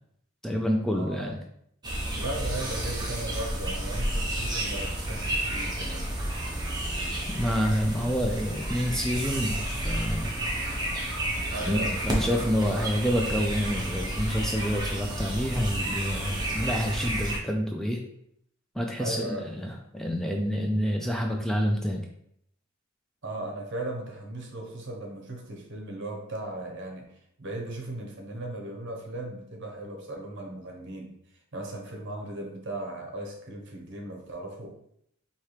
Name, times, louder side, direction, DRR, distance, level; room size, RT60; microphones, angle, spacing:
voice 1, 0.4-1.4 7.3-10.4 11.6-18.0 18.8-22.1, equal, ahead, 1 dB, 0.3 m, -28 dB
voice 2, 0.9-1.4 2.1-6.1 11.5-12.6 19.0-19.5 23.2-27.1 27.4-31.1 31.5-34.8, right 1 dB, 60° right, 2 dB, 0.9 m, -37 dB
sound 1, 1.8-17.4, right 1 dB, 20° right, 0.8 m, -31 dB
4.5 x 2.8 x 3.2 m, 0.72 s
head